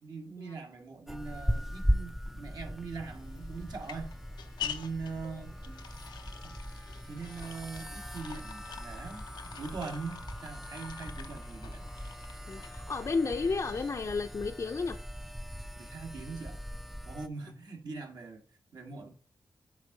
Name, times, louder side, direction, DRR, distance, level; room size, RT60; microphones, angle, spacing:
voice 1, 0.0-4.1 4.6-5.9 6.4-6.6 7.1-11.9 15.8-16.6 17.1-18.4 18.7-19.1, right 4 dB, 65° right, 1.7 m, -42 dB
sound 1, 1.1-17.3, equal, 5° right, 0.5 m, -38 dB
sound 2, 3.0-14.3, left 9 dB, 90° left, 0.7 m, -47 dB
voice 2, 12.5-15.0, left 4 dB, 50° left, 0.6 m, -32 dB
8.2 x 3.6 x 4.7 m
cardioid pair, 60°, 7 cm